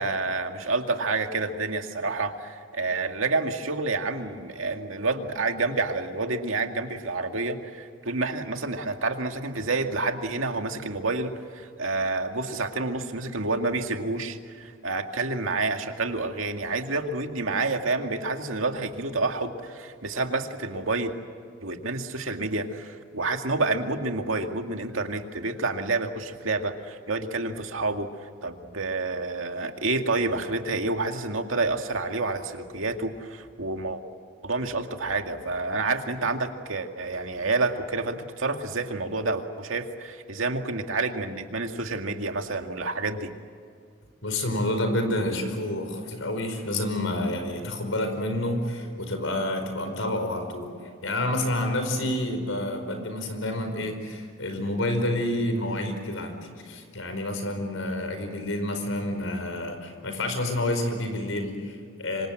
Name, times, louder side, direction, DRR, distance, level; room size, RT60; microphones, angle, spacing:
voice 1, 0.0-21.1 21.6-28.1 28.4-34.0 34.4-43.3, right 3 dB, 90° right, 5 dB, 2.1 m, -29 dB
voice 2, 44.2-50.7 51.0-56.4 56.6-62.3, left 1 dB, 85° left, 6 dB, 5.0 m, -29 dB
26.5 x 25.0 x 7.8 m, 2.1 s
head